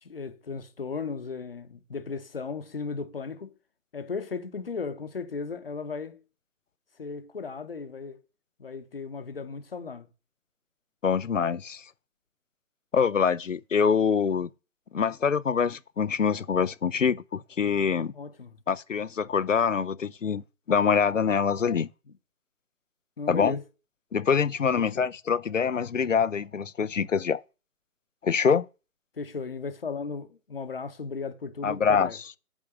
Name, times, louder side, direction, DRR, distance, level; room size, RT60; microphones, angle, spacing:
voice 1, 0.0-3.5 3.9-6.2 7.0-8.2 8.6-10.1 18.1-18.6 22.1-22.2 23.2-23.6 24.7-25.0 29.1-32.2, left 5 dB, 40° left, 0.9 m, -36 dB
voice 2, 11.0-11.8 12.9-14.5 14.9-18.1 18.7-20.4 20.7-21.9 23.3-23.6 24.1-27.4 28.2-28.6 31.6-32.1, left 6 dB, 60° left, 0.5 m, -25 dB
8.7 x 3.7 x 6.2 m
figure-of-eight pair, 155°, 44 cm